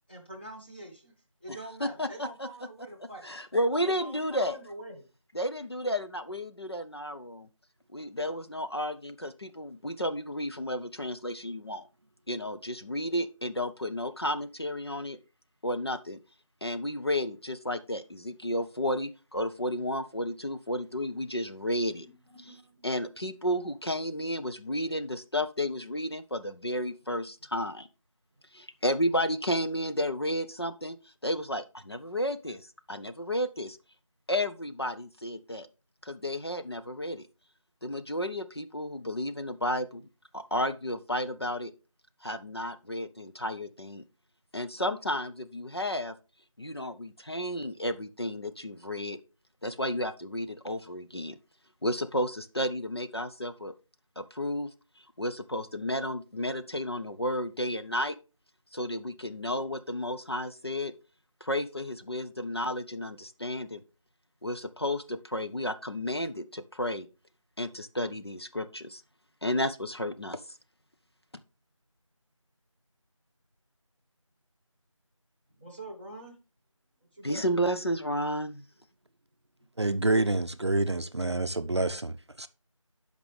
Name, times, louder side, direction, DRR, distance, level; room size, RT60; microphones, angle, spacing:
voice 1, 0.1-1.1 1.4-3.3 3.8-5.0 22.0-23.3 75.6-76.3 77.1-77.5, right 1 dB, 20° left, 1.2 m, -45 dB
voice 2, 1.5-2.3 3.2-4.6 5.3-7.5 7.9-11.8 12.3-15.2 15.6-16.2 16.6-22.1 22.8-27.9 28.5-31.0 31.2-32.6 32.9-33.8 34.3-35.7 36.0-37.3 37.8-40.0 40.3-41.7 42.2-44.0 44.5-46.1 46.6-49.2 49.6-51.4 51.8-53.7 54.2-54.7 55.2-58.2 58.7-60.9 61.4-63.8 64.4-67.1 67.6-69.0 69.4-70.4 77.2-78.6, equal, 50° left, 0.5 m, -32 dB
voice 3, 79.8-82.5, right 2 dB, 55° right, 0.5 m, -28 dB
12.5 x 5.2 x 3.3 m
figure-of-eight pair, 175°, 17 cm